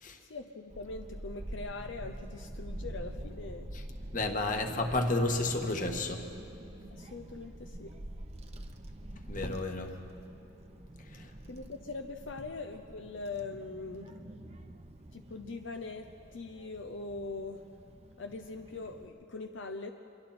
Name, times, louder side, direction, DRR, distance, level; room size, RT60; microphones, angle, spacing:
voice 1, 0.2-3.7 4.6-4.7 6.9-7.9 11.5-14.1 15.1-17.6 18.2-19.9, left 3 dB, 75° left, 6 dB, 0.8 m, -42 dB
Child speech kid speaking / Wind, 0.7-19.1, right 1 dB, 35° right, 0.9 m, -46 dB
voice 2, 4.1-6.3 9.3-10.0 11.1-11.3, left 2 dB, 45° left, 4 dB, 1.6 m, -31 dB
26.5 x 23.0 x 4.3 m, 2.6 s
head